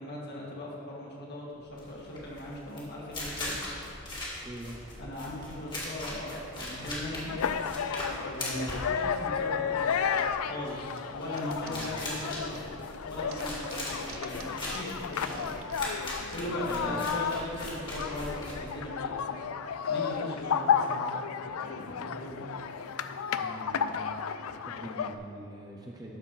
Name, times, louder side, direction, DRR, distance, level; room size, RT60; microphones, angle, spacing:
voice 1, 0.0-3.5 5.0-7.4 8.2-12.8 13.1-15.6 16.3-19.4 19.9-21.2 21.6-22.5, left 1 dB, 50° left, -4 dB, 1.9 m, -39 dB
sound 1, 1.7-19.1, left 1 dB, 20° left, 1.8 m, -40 dB
voice 2, 4.4-4.8 8.5-8.7 11.7-12.0 16.5-17.1 23.4-24.1 24.5-26.2, right 1 dB, 20° right, -1 dB, 0.7 m, -43 dB
sound 2, 7.3-25.2, left 7 dB, 75° left, 0.4 m, -33 dB
sound 3, 10.9-12.8 13.2-16.3, right 6 dB, 70° right, 0.6 m, -48 dB
12.0 x 4.3 x 5.7 m, 2.6 s
head